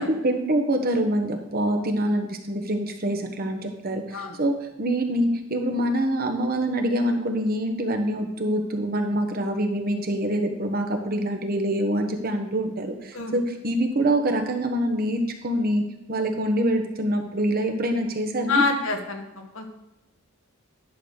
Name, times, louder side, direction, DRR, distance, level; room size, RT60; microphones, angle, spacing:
voice 1, 0.0-18.6, right 1 dB, 45° right, 4 dB, 1.2 m, -25 dB
voice 2, 18.5-19.7, left 3 dB, 70° left, 4 dB, 1.4 m, -26 dB
10.5 x 3.9 x 6.5 m, 0.94 s
head